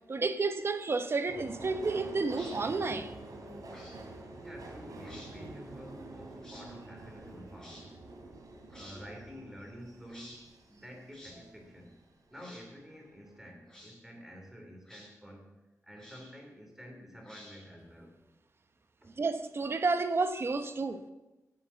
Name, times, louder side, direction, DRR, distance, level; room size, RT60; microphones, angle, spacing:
voice 1, 0.1-3.1 19.2-21.1, right 3 dB, 45° right, 1.1 m, -31 dB
Subway metro underground, 1.3-12.0 12.4-13.1 13.4-13.5, right 2 dB, 85° right, 3.1 m, -47 dB
sound 1, 2.3-2.6 3.7-4.0 5.0-5.3 6.4-6.7 7.6-7.8 8.7-9.0 10.1-10.4 11.1-11.4 12.3-12.7 13.6-14.0 14.9-15.1 16.0-16.4 17.2-17.8, left 1 dB, 10° left, 4.3 m, -52 dB
voice 2, 4.4-7.9 8.7-11.9 12.3-15.5 15.8-18.1, equal, 5° right, 3.3 m, -49 dB
17.0 x 7.7 x 7.0 m
wide cardioid pair, 145°, 6 cm